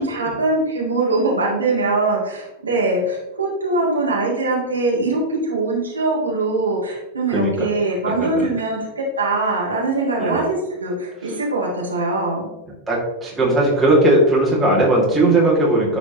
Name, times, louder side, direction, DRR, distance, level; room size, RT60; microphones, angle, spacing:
voice 1, 0.0-12.5, right 2 dB, 75° right, -4 dB, 1.9 m, -22 dB
voice 2, 12.9-16.0, right 1 dB, 15° right, -5 dB, 2.1 m, -17 dB
9.7 x 4.1 x 2.9 m, 0.99 s
figure-of-eight pair, 90°, 0 cm